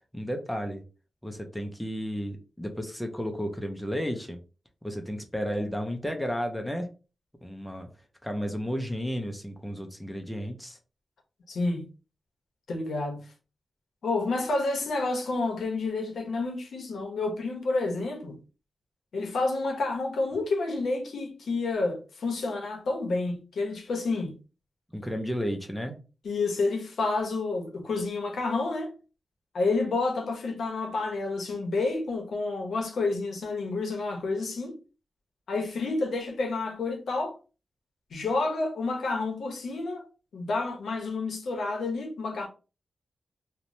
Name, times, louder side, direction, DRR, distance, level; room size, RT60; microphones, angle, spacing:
voice 1, 0.1-0.8 1.2-4.4 4.8-6.9 7.4-7.9 8.2-10.8 24.9-26.0, equal, 5° left, 0.4 m, -33 dB
voice 2, 11.5-11.9 12.7-13.2 14.0-18.4 19.1-24.3 26.2-28.9 29.5-34.8 35.5-37.3 38.1-40.1 40.3-42.5, left 3 dB, 85° left, 0.7 m, -29 dB
3.0 x 2.0 x 2.6 m
wide cardioid pair, 175°, 0 cm